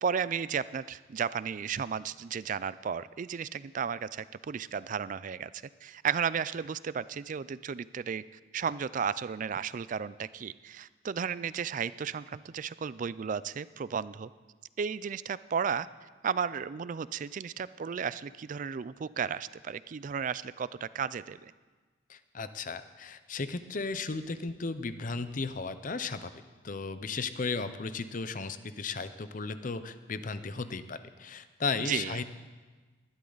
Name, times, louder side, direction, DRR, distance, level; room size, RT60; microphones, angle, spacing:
voice 1, 0.0-5.5 5.8-8.2 8.5-14.3 14.8-21.5 31.8-32.2, right 7 dB, 45° right, 17 dB, 0.3 m, -34 dB
voice 2, 22.1-26.3 26.6-32.2, left 4 dB, 45° left, 12 dB, 0.7 m, -35 dB
20.0 x 12.0 x 4.0 m, 1.3 s
head